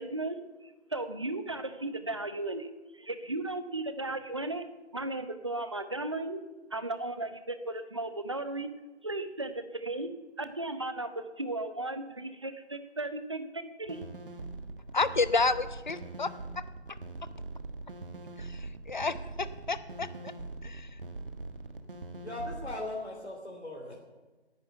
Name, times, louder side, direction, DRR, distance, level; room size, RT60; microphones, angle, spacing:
voice 1, 0.0-4.6 4.9-6.4 6.7-8.7 9.0-10.1 10.4-14.0, right 2 dB, 25° right, 0.8 m, -35 dB
sound 1, 13.8-22.7, right 2 dB, 50° right, 1.6 m, -42 dB
voice 2, 14.9-16.3 18.4-20.3 20.6-21.0, left 3 dB, 45° left, 0.9 m, -30 dB
voice 3, 22.2-23.9, left 2 dB, 70° left, 3.1 m, -38 dB
18.0 x 10.5 x 6.8 m
figure-of-eight pair, 165°, 34 cm